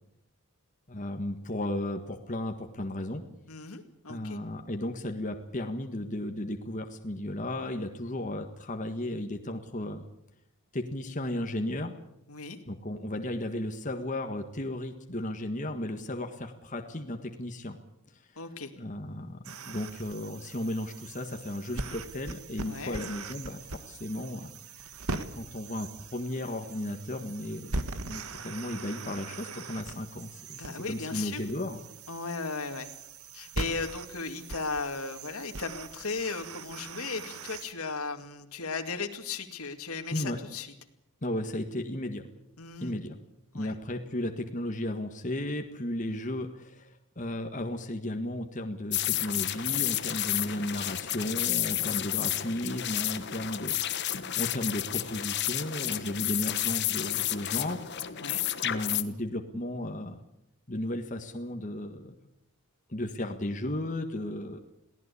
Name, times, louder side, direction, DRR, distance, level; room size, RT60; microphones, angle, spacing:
voice 1, 0.9-3.2 4.1-10.1 10.7-11.9 12.7-17.8 18.8-24.5 25.3-31.8 40.1-40.4 41.2-42.2 42.8-43.2 43.5-57.8 58.6-60.2 60.7-62.1 62.9-64.7, left 1 dB, 35° left, 5 dB, 1.7 m, -34 dB
voice 2, 3.5-4.4 12.3-12.6 18.4-18.7 22.7-23.0 30.6-31.4 32.1-32.9 33.3-40.7 42.6-42.9 43.5-43.8 58.2-58.4, left 4 dB, 80° left, 6 dB, 2.4 m, -36 dB
sound 1, 19.4-37.7, right 3 dB, 85° right, 1.7 m, -41 dB
sound 2, 48.9-59.0, left 13 dB, 50° left, 1.2 m, -31 dB
22.5 x 17.0 x 8.5 m, 0.81 s
head